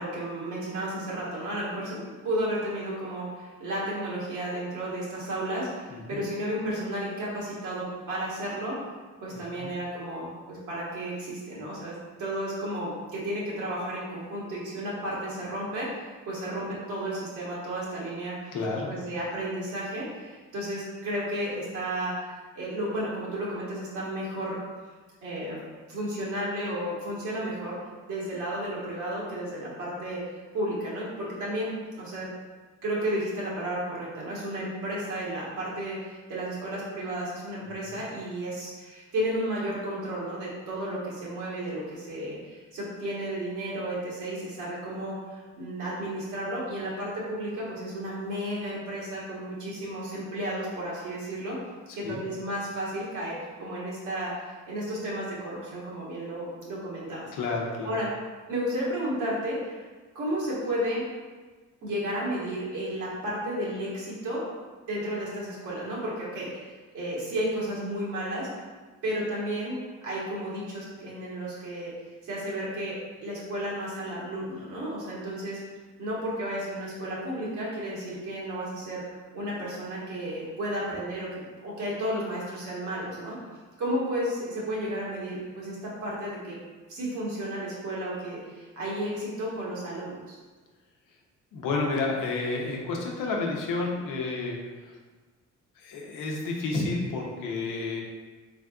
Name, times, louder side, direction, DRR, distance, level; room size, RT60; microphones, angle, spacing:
voice 1, 0.0-2.0 2.2-8.8 9.2-18.6 18.9-24.6 25.2-25.6 25.9-27.8 28.1-30.2 30.5-32.3 32.8-51.6 51.9-57.3 57.8-58.1 58.5-59.8 60.1-61.1 61.8-64.4 64.9-68.5 69.0-69.8 70.0-71.9 72.2-73.0 73.2-75.6 76.0-83.5 83.8-86.6 86.9-90.4, right 1 dB, 80° right, -6 dB, 1.3 m, -33 dB
voice 2, 5.9-6.3 9.6-9.7 18.5-18.9 37.6-38.0 52.0-52.2 57.3-58.0 91.5-94.9 95.8-98.0, left 3 dB, 90° left, -1 dB, 0.8 m, -31 dB
3.7 x 3.4 x 2.3 m, 1.4 s
cardioid pair, 90°, 30 cm